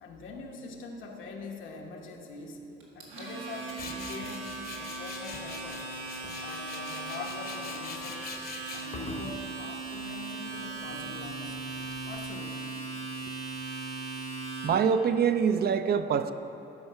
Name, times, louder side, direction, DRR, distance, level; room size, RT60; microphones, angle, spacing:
voice 1, 0.0-2.6 2.9-5.9 6.4-8.4 8.7-11.7 12.0-12.9, left 3 dB, 80° left, 1 dB, 1.1 m, -43 dB
Domestic sounds home sounds, 2.8-14.7, right 3 dB, 90° right, 2.0 m, -38 dB
Tools, 3.7-12.5, left 4 dB, 50° left, 1.0 m, -44 dB
voice 2, 14.6-16.3, right 7 dB, 50° right, 10 dB, 0.5 m, -25 dB
12.0 x 4.7 x 5.6 m, 3.0 s
cardioid pair, 90°, 20 cm